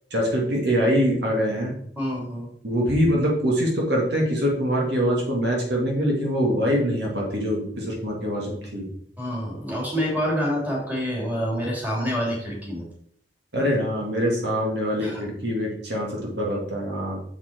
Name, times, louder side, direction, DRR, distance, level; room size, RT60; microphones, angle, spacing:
voice 1, 0.1-1.7 2.6-8.9 13.5-17.2, equal, 70° right, -2 dB, 2.2 m, -24 dB
voice 2, 2.0-2.5 9.2-12.9 15.0-15.2, equal, 10° right, -3 dB, 2.8 m, -27 dB
6.9 x 6.0 x 4.5 m, 0.65 s
head